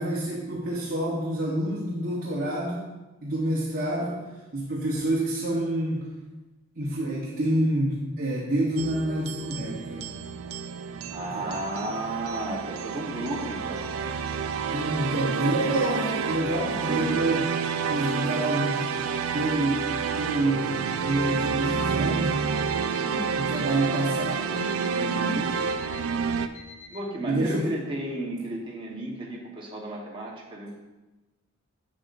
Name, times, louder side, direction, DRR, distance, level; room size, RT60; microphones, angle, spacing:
voice 1, 0.0-2.9 3.2-4.2 4.5-6.1 6.7-10.1 11.3-11.5 14.7-17.6 17.9-18.9 19.3-19.9 20.2-22.4 23.3-24.8 27.2-27.7, right 1 dB, 45° right, -6 dB, 1.1 m, -28 dB
sound 1, 8.8-26.5, right 6 dB, 85° right, 0.4 m, -29 dB
voice 2, 11.1-13.9 16.9-17.1 22.9-23.3 24.9-25.5 26.9-30.7, right 1 dB, 25° right, -3 dB, 1.2 m, -33 dB
Alarm, 22.5-23.0 23.5-24.0 24.5-25.0 25.5-26.0 26.5-27.0, left 6 dB, 60° left, 1.4 m, -46 dB
8.1 x 7.1 x 2.6 m, 1.1 s
head